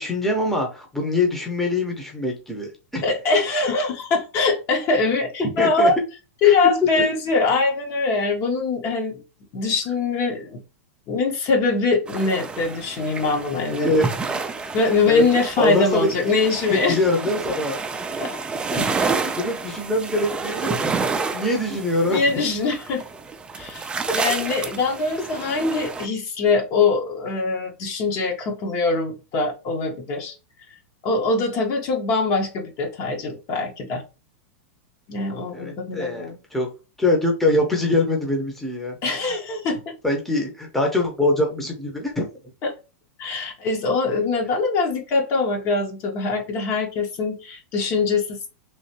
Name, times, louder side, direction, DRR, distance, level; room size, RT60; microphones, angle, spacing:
voice 1, 0.0-3.0 5.4-5.9 6.4-6.5 7.0-7.1 13.8-14.1 14.6-14.7 15.1-15.2 15.6-16.1 16.7-17.8 18.7-20.8 21.3-22.5 25.2-25.3 35.5-36.3 36.5-36.7 37.0-39.0 40.0-42.3, left 1 dB, 5° left, 0.8 m, -23 dB
voice 2, 3.0-6.0 6.4-9.2 9.5-10.6 11.1-13.9 14.7-17.0 18.2-18.3 19.0-19.1 22.1-23.0 23.5-30.3 31.0-34.0 35.1-36.4 39.0-39.9 42.6-42.7 43.2-48.5, left 4 dB, 40° left, 1.0 m, -23 dB
sound 1, 12.1-26.1, right 4 dB, 10° right, 0.4 m, -29 dB
3.1 x 2.6 x 2.8 m
hypercardioid pair, 130°, 7 cm